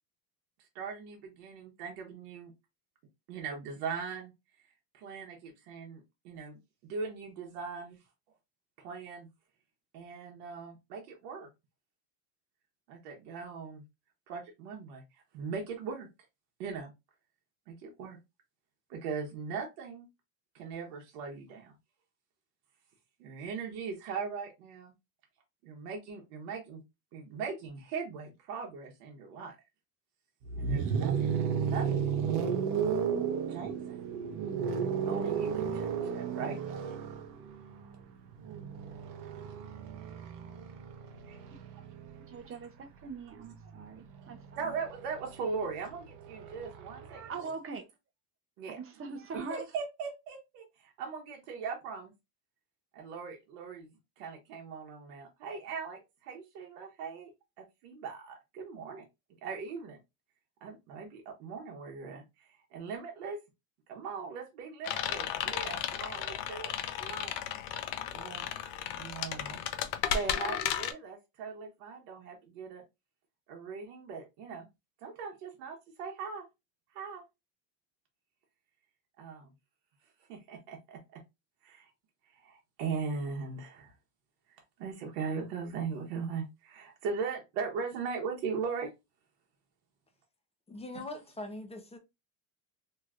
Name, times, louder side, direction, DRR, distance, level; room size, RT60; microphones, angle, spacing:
voice 1, 0.6-2.5 3.3-4.3 4.9-6.6 6.9-8.0 8.8-9.3 9.9-11.5 12.9-13.8 14.3-15.0 15.3-16.1 16.6-16.9 17.7-18.2 18.9-20.1 20.5-21.7 23.2-24.9 25.6-26.8 27.1-29.6 30.6-32.6 33.5-34.0 35.1-36.9 41.3-41.4 44.6-47.5 48.6-48.8 49.3-52.1 52.9-57.3 57.6-59.0 59.4-60.0 60.6-63.4 63.9-66.7 67.0-67.4 68.1-68.5 68.9-69.6 70.1-72.8 73.5-74.7 75.0-76.4 76.9-77.2 79.2-79.5 80.3-81.2 81.6-81.9 82.3-83.9 84.5-88.9, right 5 dB, 80° right, 1.0 m, -40 dB
sound 1, 30.4-42.4 43.6-47.2, right 7 dB, 60° right, 0.8 m, -34 dB
voice 2, 42.3-44.7 45.6-45.7 47.1-47.8 48.7-49.7, right 4 dB, 30° right, 0.6 m, -42 dB
sound 2, 64.8-70.9, left 10 dB, 65° left, 0.7 m, -34 dB
voice 3, 90.7-92.0, left 2 dB, 15° left, 0.6 m, -42 dB
3.1 x 2.8 x 2.4 m
supercardioid pair, 100°, 46 cm